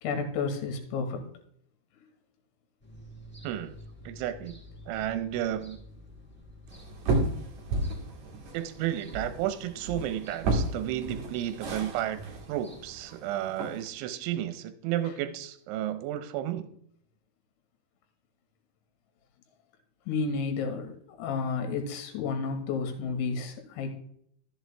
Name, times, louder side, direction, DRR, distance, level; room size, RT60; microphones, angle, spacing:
voice 1, 0.0-1.2 20.1-20.9 21.2-24.0, left 5 dB, 75° left, 5 dB, 4.0 m, -31 dB
sound 1, 2.8-13.0, left 1 dB, 5° left, 0.8 m, -51 dB
voice 2, 4.1-4.6 4.9-5.8 8.5-12.2 12.5-16.7, right 12 dB, 80° right, 11 dB, 3.1 m, -32 dB
sound 2, 6.7-13.8, right 2 dB, 50° right, 2.4 m, -33 dB
13.5 x 7.6 x 3.4 m, 0.68 s
omnidirectional pair, 5.6 m